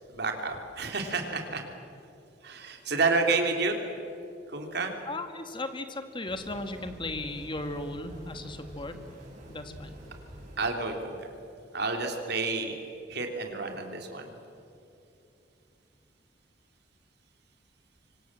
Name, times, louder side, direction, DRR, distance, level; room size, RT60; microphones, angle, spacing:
voice 1, 0.1-1.6 2.4-3.8 4.5-4.9 10.6-11.3 11.7-12.7 13.1-14.3, right 3 dB, 65° right, 4 dB, 3.3 m, -30 dB
voice 2, 5.1-8.9 9.5-10.0, left 2 dB, 30° left, 7 dB, 1.9 m, -36 dB
sound 1, 6.3-10.7, equal, 45° right, 6.8 m, -47 dB
27.0 x 24.5 x 7.6 m, 2.7 s
head